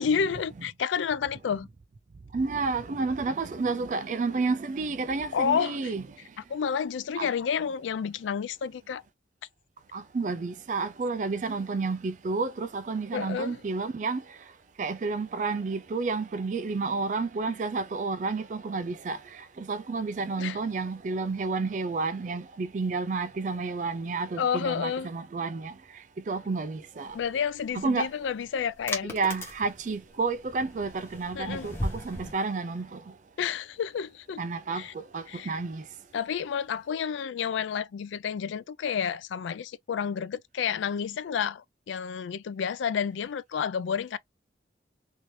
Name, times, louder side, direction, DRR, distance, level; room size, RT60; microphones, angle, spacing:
voice 1, 0.0-1.7 5.3-5.9 6.5-9.0 13.1-13.6 20.4-20.6 24.4-25.1 27.1-29.2 31.3-31.7 33.4-34.4 34.7-34.9 35.3-35.6 36.1-44.2, left 7 dB, 90° left, 0.3 m, -30 dB
voice 2, 2.3-6.0 7.2-7.3 9.9-14.2 14.8-25.8 26.3-27.2 27.7-28.1 29.0-33.0 34.4-35.9, right 4 dB, 40° right, 0.3 m, -30 dB
sound 1, 27.1-32.3, left 1 dB, 15° left, 1.0 m, -38 dB
2.9 x 2.6 x 3.1 m
head